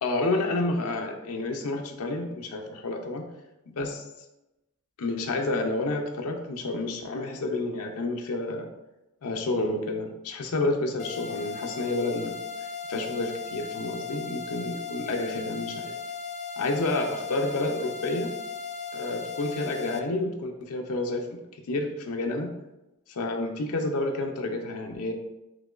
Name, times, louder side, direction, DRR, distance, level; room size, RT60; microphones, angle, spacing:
voice 1, 0.0-3.3 3.7-4.1 5.0-8.7 9.2-12.4 12.9-15.9 16.6-18.3 18.9-22.5 23.1-25.1, left 2 dB, 90° left, 3 dB, 0.5 m, -30 dB
sound 1, 11.0-20.0, left 5 dB, 30° left, 0.3 m, -37 dB
5.7 x 2.9 x 2.4 m, 0.96 s
head